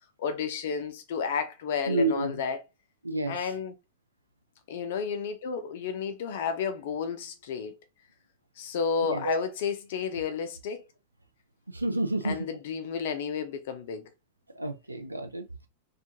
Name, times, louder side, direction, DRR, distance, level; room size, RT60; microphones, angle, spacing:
voice 1, 0.2-2.6 3.3-3.7 4.7-7.7 8.6-10.8 12.2-14.1, left 6 dB, 55° left, 0.5 m, -31 dB
voice 2, 1.9-2.4 3.0-3.5 9.0-9.4 11.7-12.5 14.5-15.5, right 2 dB, 85° right, 0.4 m, -30 dB
2.5 x 2.4 x 2.7 m
figure-of-eight pair, 90°, 0 cm